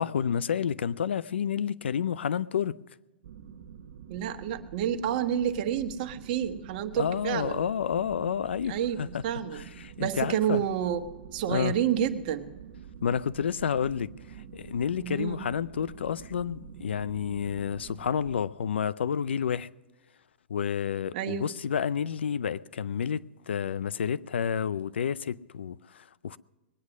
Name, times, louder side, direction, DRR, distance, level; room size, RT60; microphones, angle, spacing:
voice 1, 0.0-2.8 7.0-9.2 9.5-10.6 11.5-11.7 13.0-14.1 14.5-19.7 20.5-26.4, left 7 dB, 85° left, 0.5 m, -30 dB
sound 1, 3.2-18.4, right 8 dB, 70° right, 0.9 m, -47 dB
voice 2, 4.1-7.6 8.7-9.7 10.0-11.0 11.3-12.5 15.0-15.5 21.1-21.5, right 9 dB, 55° right, 1.3 m, -29 dB
21.0 x 9.7 x 6.3 m
hypercardioid pair, 120°, 6 cm